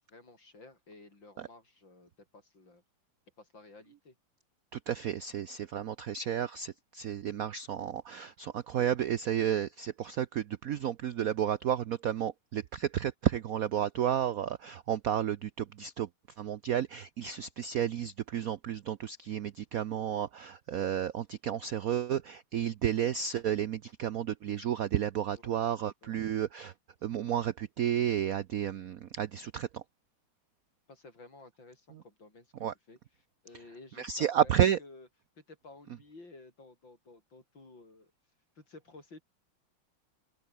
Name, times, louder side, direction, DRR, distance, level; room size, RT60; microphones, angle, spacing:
voice 1, 0.0-2.8 3.4-4.1 25.4-25.6 26.0-26.2 30.9-33.0 33.4-35.1 35.4-38.1 38.5-39.2, left 3 dB, 60° left, 6.8 m, -54 dB
voice 2, 4.7-16.1 16.4-26.7 27.0-29.8 32.6-32.7 34.0-34.8, right 10 dB, 75° right, 0.8 m, -32 dB
omnidirectional pair, 2.4 m